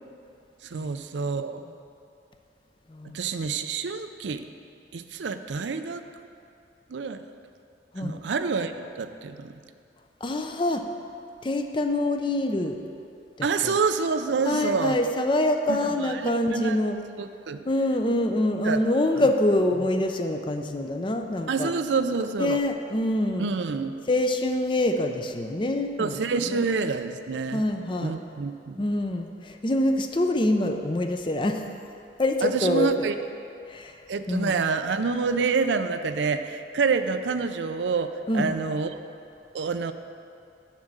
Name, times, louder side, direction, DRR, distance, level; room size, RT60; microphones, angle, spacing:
voice 1, 0.6-1.6 3.1-4.4 4.9-6.0 6.9-7.2 8.0-9.5 13.4-15.0 15.7-16.8 17.2-17.6 18.6-18.8 21.5-22.6 23.4-24.0 26.0-27.6 28.0-28.8 32.4-33.1 34.1-38.9 39.5-39.9, right 4 dB, 90° right, 9 dB, 0.5 m, -27 dB
voice 2, 10.2-10.9 11.4-12.8 13.4-13.7 14.4-17.0 17.6-21.7 22.4-23.5 24.1-26.2 26.5-26.6 27.5-28.1 28.8-31.6 32.2-33.1 33.7-34.0 34.3-34.6 38.3-38.5, left 1 dB, 25° left, 5 dB, 0.5 m, -25 dB
7.3 x 6.6 x 7.4 m, 2.5 s
head